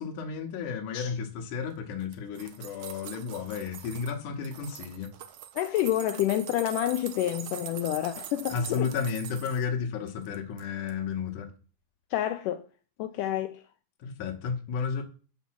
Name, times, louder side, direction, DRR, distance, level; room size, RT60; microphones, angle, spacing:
voice 1, 0.0-5.1 8.5-11.5 14.0-15.0, left 6 dB, 65° left, 2.4 m, -33 dB
sound 1, 2.0-4.1 4.4-9.6 10.1-10.6 10.9-11.0, right 11 dB, 70° right, 2.0 m, -43 dB
voice 2, 5.5-8.9 12.1-12.6 13.0-13.6, left 13 dB, 90° left, 1.8 m, -28 dB
8.3 x 5.3 x 7.4 m
omnidirectional pair, 4.3 m